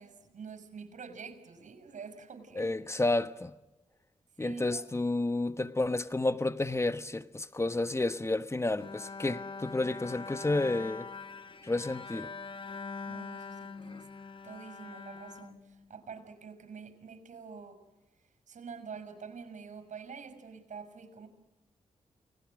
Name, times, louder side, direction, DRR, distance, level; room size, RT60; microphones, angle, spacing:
voice 1, 0.0-2.7 4.4-4.8 13.0-14.0 14.4-17.8 18.5-21.3, right 5 dB, 75° right, 6.0 m, -46 dB
voice 2, 2.6-3.6 4.4-11.1 11.6-12.3, left 2 dB, 20° left, 1.2 m, -31 dB
Bowed string instrument, 8.8-16.2, left 4 dB, 40° left, 1.3 m, -43 dB
29.5 x 20.0 x 6.5 m
cardioid pair, 70°, 13 cm